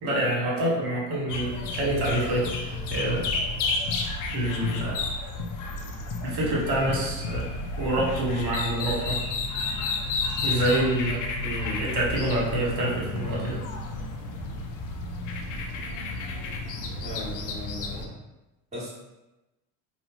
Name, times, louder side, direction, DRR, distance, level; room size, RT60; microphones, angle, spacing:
voice 1, 0.0-3.3 4.3-5.0 6.2-7.5 7.8-9.2 10.4-11.2 11.8-13.6, right 1 dB, 55° right, -3 dB, 1.2 m, -27 dB
sound 1, 1.3-18.1, left 3 dB, 40° left, 0.5 m, -31 dB
voice 2, 11.4-11.8 17.0-18.1 18.7-18.9, left 1 dB, 15° right, -6 dB, 1.1 m, -36 dB
3.9 x 2.0 x 2.3 m, 1.0 s
figure-of-eight pair, 65°, 50 cm